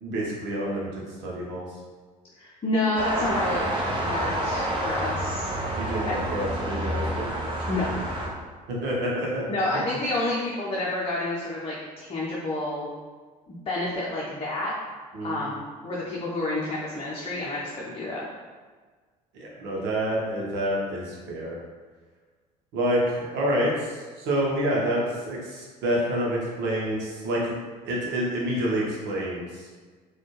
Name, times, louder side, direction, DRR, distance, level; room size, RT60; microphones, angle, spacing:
voice 1, 0.0-1.7 5.7-7.3 8.7-9.5 15.1-15.4 19.3-21.6 22.7-27.6 27.8-29.7, right 1 dB, 60° right, -4 dB, 1.0 m, -28 dB
voice 2, 2.4-3.7 4.0-5.5 6.1-6.2 7.7-7.9 9.5-12.9 13.5-14.7 15.2-18.3, left 2 dB, 30° left, -6 dB, 0.8 m, -29 dB
sound 1, 2.9-8.3, right 1 dB, 25° right, 1.0 m, -28 dB
4.2 x 2.4 x 3.1 m, 1.4 s
hypercardioid pair, 60°, 21 cm